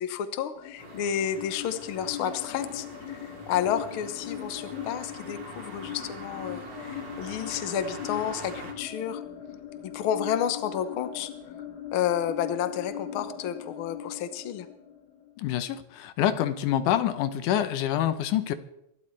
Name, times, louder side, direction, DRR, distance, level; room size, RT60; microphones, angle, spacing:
voice 1, 0.0-9.2 9.8-11.3 11.9-14.7, left 9 dB, 65° left, 10 dB, 1.3 m, -31 dB
sound 1, 0.5-15.5, left 9 dB, 40° left, 2.3 m, -40 dB
sound 2, 0.8-8.7, right 2 dB, 40° right, 2.2 m, -45 dB
voice 2, 15.4-18.5, left 11 dB, 85° left, 11 dB, 2.3 m, -26 dB
26.0 x 12.0 x 3.2 m, 0.82 s
omnidirectional pair, 3.6 m